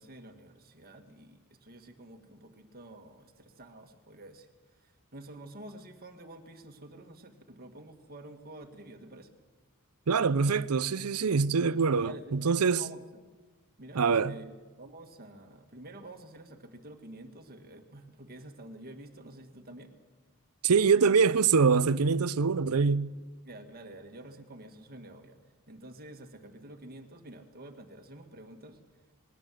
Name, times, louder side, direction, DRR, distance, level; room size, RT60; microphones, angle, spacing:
voice 1, 0.0-4.5 4.8-9.3 12.0-12.3 12.7-13.0 13.8-19.9 23.5-25.4 25.7-28.8, right 1 dB, 45° right, 1.9 m, -49 dB
voice 2, 10.1-12.8 13.9-14.4 20.6-23.1, right 5 dB, 85° right, 0.6 m, -24 dB
20.5 x 17.0 x 7.7 m
head